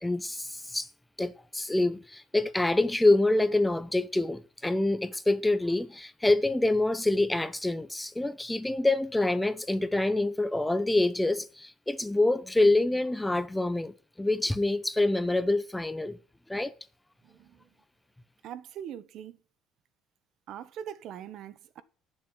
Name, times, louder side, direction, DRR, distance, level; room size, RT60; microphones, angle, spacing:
voice 1, 0.0-0.9 1.2-13.9 14.2-16.2 16.5-16.7, left 2 dB, 5° left, 0.7 m, -26 dB
voice 2, 17.2-17.6 18.4-19.4 20.5-21.8, right 9 dB, 55° right, 1.1 m, -42 dB
9.8 x 7.4 x 9.0 m
cardioid pair, 135°, 0 cm